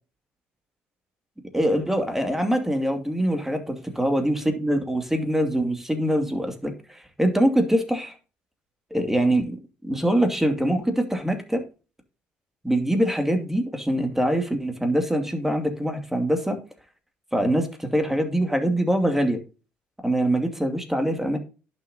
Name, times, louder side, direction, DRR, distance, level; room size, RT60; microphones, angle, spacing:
voice 1, 1.5-8.1 8.9-9.6 9.8-11.6 12.6-16.6 17.3-19.4 20.0-21.4, right 1 dB, 5° right, 5 dB, 2.4 m, -23 dB
11.0 x 6.5 x 2.8 m, 0.33 s
hypercardioid pair, 55°, 6 cm